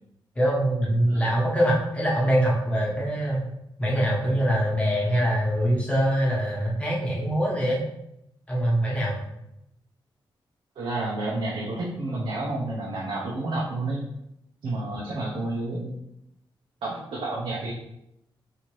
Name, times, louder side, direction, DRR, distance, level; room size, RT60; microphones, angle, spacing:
voice 1, 0.4-3.4 3.8-7.8 8.5-9.2, equal, 15° left, -5 dB, 1.1 m, -23 dB
voice 2, 10.8-14.0 14.6-15.9 16.8-17.7, right 2 dB, 75° right, -4 dB, 0.7 m, -30 dB
4.2 x 2.8 x 3.1 m, 0.84 s
wide cardioid pair, 140°, 9 cm